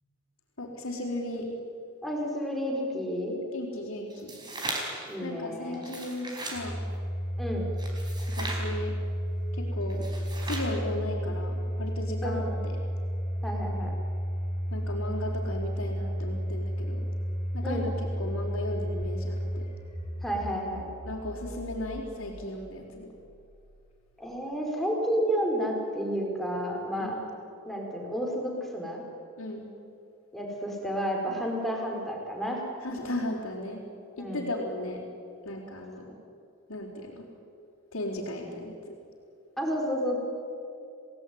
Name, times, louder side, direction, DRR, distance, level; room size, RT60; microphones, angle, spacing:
voice 1, 0.6-1.5 3.5-4.4 5.2-6.8 8.3-9.0 9.5-10.1 10.4-12.8 14.7-17.1 17.5-19.6 21.1-23.1 27.0-27.3 29.4-29.7 31.3-31.5 32.8-33.8 34.2-35.1 35.4-36.0 36.7-37.2 37.9-38.7, left 1 dB, 80° left, -5 dB, 4.5 m, -36 dB
voice 2, 2.0-3.4 5.1-5.8 7.4-7.6 12.2-12.6 13.4-14.0 17.6-17.9 20.2-20.9 24.2-27.1 27.6-29.0 30.3-32.6 34.2-34.5 39.6-40.2, equal, ahead, 0 dB, 4.8 m, -31 dB
sound 1, 4.1-5.1 5.7-6.6 7.8-8.7 9.9-10.8, right 2 dB, 20° right, 5.1 m, -37 dB
Domestic sounds home sounds, 6.5-23.5, equal, 25° left, 4.7 m, -33 dB
30.0 x 18.5 x 9.7 m, 2.6 s
head